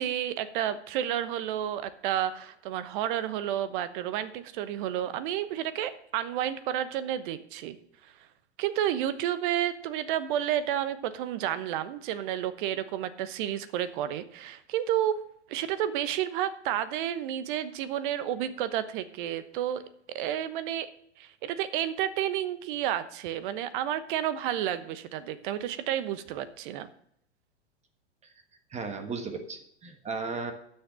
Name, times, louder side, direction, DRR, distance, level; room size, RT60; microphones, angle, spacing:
voice 1, 0.0-7.8 8.6-15.2 15.5-19.8 20.1-20.9 21.2-26.9, right 11 dB, 45° right, 13 dB, 1.1 m, -31 dB
voice 2, 28.7-30.5, right 4 dB, 20° right, 7 dB, 1.3 m, -35 dB
11.5 x 6.7 x 6.2 m, 0.70 s
figure-of-eight pair, 100°, 34 cm